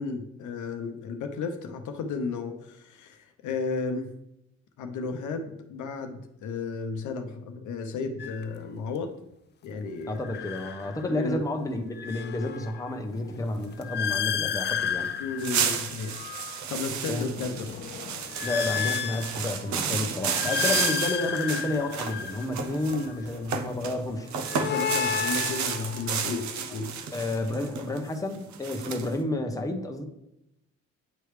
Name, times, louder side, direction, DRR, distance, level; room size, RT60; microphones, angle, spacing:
voice 1, 0.0-4.1 4.8-9.1 9.6-10.2 11.1-11.4 15.2-16.2 16.7-17.8 20.1-20.3 24.5-27.0, left 4 dB, 75° left, 6 dB, 0.8 m, -33 dB
sound 1, 8.2-8.4 10.1-11.3 11.7-16.6 17.1-19.8 20.2-23.2 24.2-26.4, left 8 dB, 35° left, 0.4 m, -33 dB
voice 2, 10.1-15.1 17.1-17.3 18.4-24.3 27.1-30.0, left 2 dB, 10° left, 5 dB, 0.8 m, -30 dB
sound 2, 15.0-15.1 15.4-24.0 24.3-29.1, right 7 dB, 70° right, 0.7 m, -32 dB
9.0 x 3.3 x 3.2 m, 0.84 s
cardioid pair, 90°, 30 cm